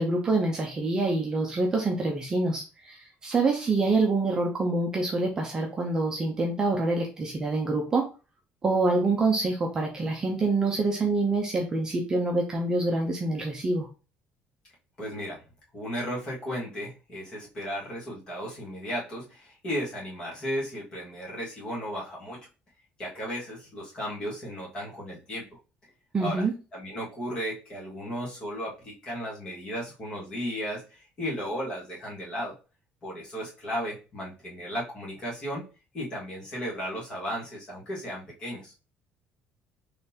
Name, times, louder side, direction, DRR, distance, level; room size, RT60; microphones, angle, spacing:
voice 1, 0.0-8.1 8.6-13.9 26.1-26.5, right 3 dB, 20° right, 0 dB, 0.5 m, -26 dB
voice 2, 15.0-15.4 15.7-22.5 23.0-25.6 26.2-32.5 33.0-35.6 35.9-38.7, equal, 25° left, -5 dB, 1.6 m, -35 dB
3.9 x 3.2 x 2.8 m, 0.32 s
cardioid pair, 180°, 4 cm